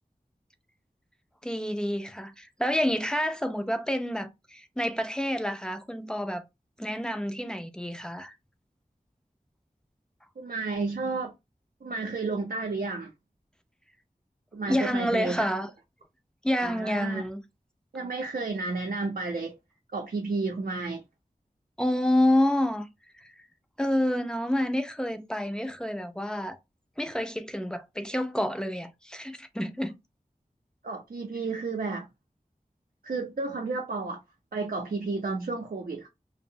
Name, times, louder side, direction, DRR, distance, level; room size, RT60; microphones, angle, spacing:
voice 1, 1.4-6.4 6.8-8.4 14.7-15.7 16.4-17.4 21.8-22.9 23.2-23.3 23.8-26.6 27.0-29.9, left 1 dB, 5° left, 0.4 m, -28 dB
voice 2, 10.4-11.3 11.8-13.1 14.5-15.5 16.6-17.3 17.9-19.6 19.9-21.0 30.8-32.1 33.0-34.2 34.5-36.1, right 3 dB, 80° right, 0.5 m, -32 dB
2.7 x 2.0 x 2.6 m
wide cardioid pair, 50°, 15 cm